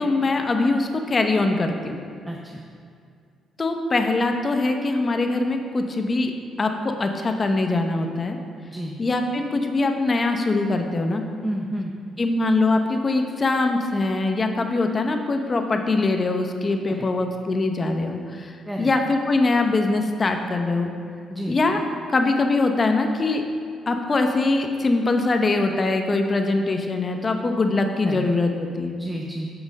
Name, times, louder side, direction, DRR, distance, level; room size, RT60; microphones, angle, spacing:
voice 1, 0.0-2.0 3.6-6.3 6.6-8.4 9.0-11.2 12.2-20.9 21.5-21.8 22.1-23.4 23.9-28.9, left 3 dB, 35° left, 5 dB, 0.9 m, -22 dB
voice 2, 2.3-2.6 8.7-9.0 11.4-12.0 16.9-17.1 18.7-18.9 21.3-21.6 28.0-28.3 29.0-29.5, right 1 dB, 5° right, -1 dB, 0.7 m, -31 dB
9.0 x 6.0 x 5.3 m, 2.3 s
cardioid pair, 90°, 0 cm